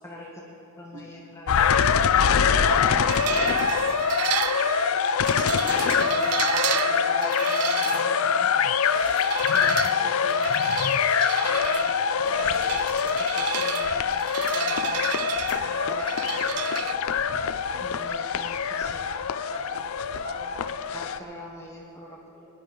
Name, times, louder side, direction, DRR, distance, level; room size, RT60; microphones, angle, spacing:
voice 1, 0.8-1.8 9.5-10.4 13.4-13.9 17.8-19.0 20.9-22.2, left 1 dB, 10° left, -2 dB, 1.0 m, -43 dB
sound 1, 1.5-21.2, left 6 dB, 65° left, 0.4 m, -24 dB
voice 2, 2.4-4.1 5.4-8.4 11.4-11.7 12.2-12.7 14.5-14.8 15.2-16.8 19.5-19.6 20.2-20.5, equal, 60° right, -6 dB, 3.8 m, -37 dB
sound 2, 3.1-16.9, right 10 dB, 85° right, 0.5 m, -33 dB
voice 3, 4.6-5.4 18.8-20.9 21.6-21.7 22.0-22.5, left 1 dB, 25° right, -6 dB, 3.5 m, -54 dB
21.5 x 10.5 x 3.9 m, 2.5 s
head